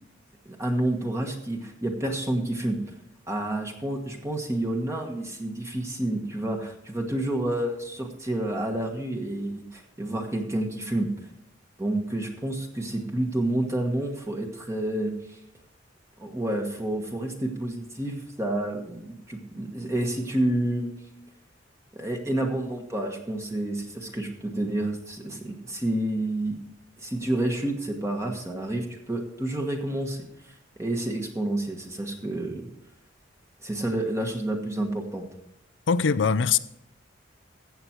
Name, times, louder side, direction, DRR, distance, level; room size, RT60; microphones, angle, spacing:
voice 1, 0.4-2.8 3.3-11.1 11.8-15.1 16.2-20.9 21.9-26.6 27.0-30.2 30.8-32.7 33.6-35.3, right 1 dB, 15° right, 1.3 m, -29 dB
voice 2, 35.9-36.6, left 6 dB, 70° left, 0.5 m, -22 dB
14.5 x 7.8 x 4.5 m
head